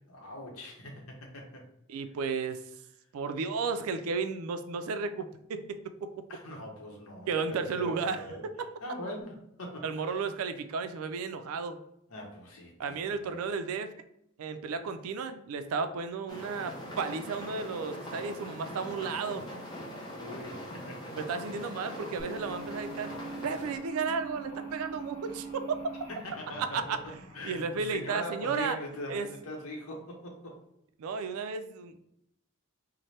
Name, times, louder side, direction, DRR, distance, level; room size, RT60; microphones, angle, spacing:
voice 1, 0.1-1.6 6.3-8.5 8.8-10.1 12.1-13.4 20.1-21.2 26.1-27.0 27.3-30.6, left 1 dB, 80° left, 1 dB, 0.8 m, -42 dB
voice 2, 1.9-2.6 3.1-6.1 7.3-8.3 8.6-8.7 9.8-11.8 12.8-13.9 14.4-19.4 21.1-23.1 23.4-25.9 26.6-28.8 29.1-29.3 31.0-32.0, right 5 dB, 85° right, 9 dB, 0.3 m, -33 dB
sound 1, 16.3-23.8, equal, 20° left, 0.6 m, -42 dB
sound 2, 22.2-28.6, right 4 dB, 50° left, 1.0 m, -43 dB
4.1 x 2.1 x 3.1 m, 0.77 s
head